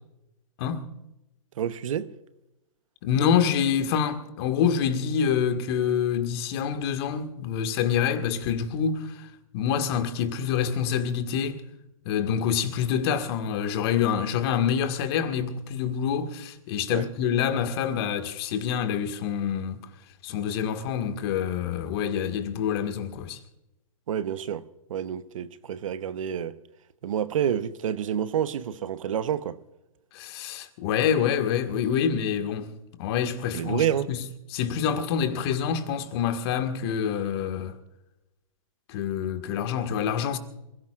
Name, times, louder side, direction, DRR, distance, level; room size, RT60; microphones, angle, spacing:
voice 1, 1.6-2.1 16.9-17.1 24.1-24.6 24.9-26.5 27.0-29.6 33.5-34.1, right 9 dB, 65° right, 1.0 m, -28 dB
voice 2, 3.0-11.6 12.1-19.9 20.2-23.4 30.1-32.7 33.0-34.2 34.5-37.8 38.9-40.4, left 8 dB, 45° left, 1.9 m, -26 dB
27.5 x 17.0 x 2.5 m
hypercardioid pair, 130°, 18 cm